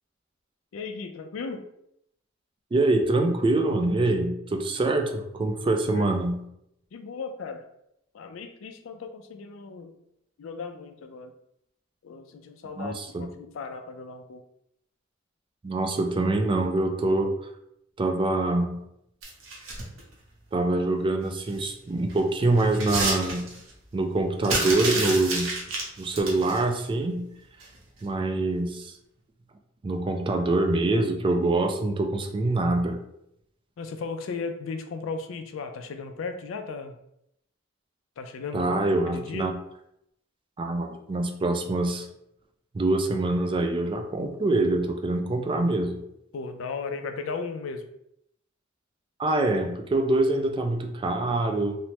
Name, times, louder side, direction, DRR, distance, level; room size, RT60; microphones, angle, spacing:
voice 1, 0.7-1.7 5.9-6.1 6.9-7.7 8.1-10.0 10.4-11.3 12.0-14.4 33.8-37.0 38.2-38.7 39.1-39.5 46.3-47.9, left 4 dB, 80° left, 7 dB, 0.4 m, -36 dB
voice 2, 2.7-6.4 12.8-13.3 15.6-17.3 18.0-18.8 20.5-23.5 23.9-25.5 26.0-27.3 28.0-28.9 29.8-33.0 38.5-39.5 40.6-42.1 42.7-46.0 49.2-51.8, right 2 dB, 25° right, 4 dB, 0.3 m, -25 dB
sound 1, 19.2-20.0 21.5-21.7 22.1-23.7 24.4-26.6 27.6-27.8 28.1-28.2, right 2 dB, 85° right, 0.7 m, -30 dB
3.2 x 2.0 x 2.8 m, 0.77 s
head